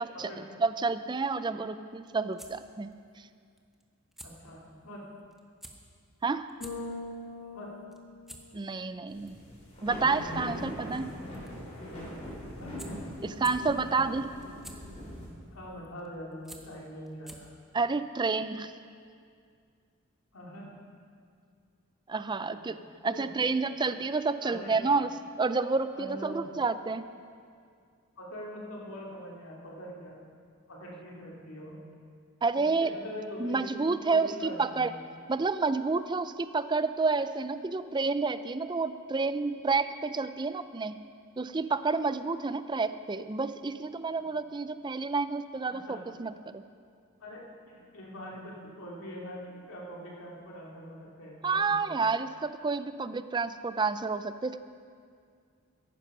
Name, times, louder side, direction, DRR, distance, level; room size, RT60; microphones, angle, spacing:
voice 1, 0.6-2.9 3.2-3.3 6.2-6.5 8.5-9.4 9.8-11.1 13.2-14.3 17.7-18.7 22.1-22.8 23.0-25.1 25.4-27.0 32.4-32.9 33.4-34.9 35.3-41.0 41.4-46.6 51.4-54.6, right 4 dB, 20° right, 12 dB, 0.4 m, -29 dB
sound 1, 1.8-17.7, right 1 dB, ahead, 0.8 m, -54 dB
voice 2, 4.2-5.1 7.5-7.7 10.5-10.7 12.6-12.8 13.7-14.1 15.5-17.5 20.3-20.7 22.3-22.7 23.0-23.3 24.4-24.7 25.9-26.5 28.2-30.2 30.7-31.8 32.5-33.8 34.0-35.0 44.1-44.3 45.7-46.0 47.2-51.9, equal, 75° left, -3 dB, 2.6 m, -43 dB
Bass guitar, 6.6-8.9, left 2 dB, 50° left, 2.8 m, -42 dB
sound 2, 9.1-15.3, left 1 dB, 30° left, 3.5 m, -41 dB
15.0 x 10.5 x 5.4 m, 2.2 s
head